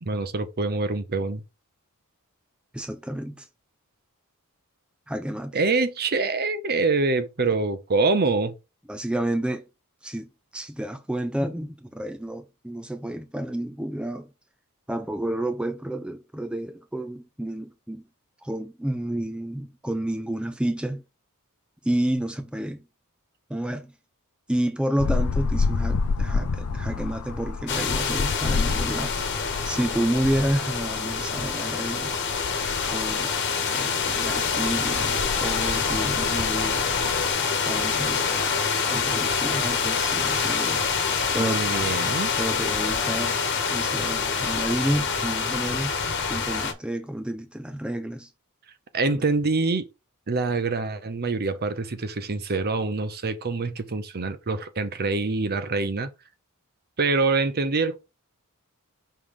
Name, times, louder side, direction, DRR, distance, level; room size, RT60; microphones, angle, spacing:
voice 1, 0.0-1.4 5.5-8.5 41.4-42.3 48.9-49.9 50.3-56.1 57.0-58.0, right 3 dB, 45° right, 0.8 m, -25 dB
voice 2, 2.7-3.5 5.1-5.6 8.9-9.6 10.0-14.3 14.9-18.0 18.4-21.0 21.8-22.8 23.5-23.9 24.5-32.1 32.9-33.3 33.7-37.0 37.7-38.5 38.9-40.9 41.3-41.6 42.4-43.4 43.7-46.0 46.3-48.3 49.1-49.2, right 1 dB, 5° right, 0.4 m, -30 dB
sound 1, 25.0-37.3, left 4 dB, 75° left, 0.5 m, -30 dB
sound 2, 27.7-46.7, left 5 dB, 55° left, 1.3 m, -26 dB
5.5 x 3.4 x 5.0 m
head